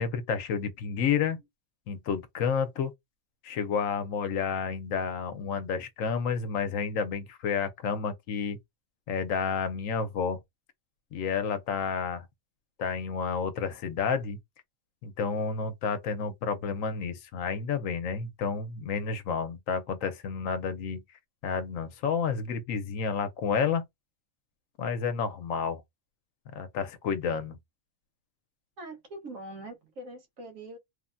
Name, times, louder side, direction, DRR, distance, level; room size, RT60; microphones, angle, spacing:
voice 1, 0.0-1.4 1.9-2.9 3.4-8.6 9.1-10.4 11.1-12.3 12.8-14.4 15.0-21.0 21.4-23.8 24.8-25.8 26.5-27.6, left 6 dB, 80° left, 1.0 m, -30 dB
voice 2, 28.8-30.8, right 1 dB, 80° right, 1.4 m, -43 dB
3.2 x 2.1 x 2.5 m
omnidirectional pair, 1.4 m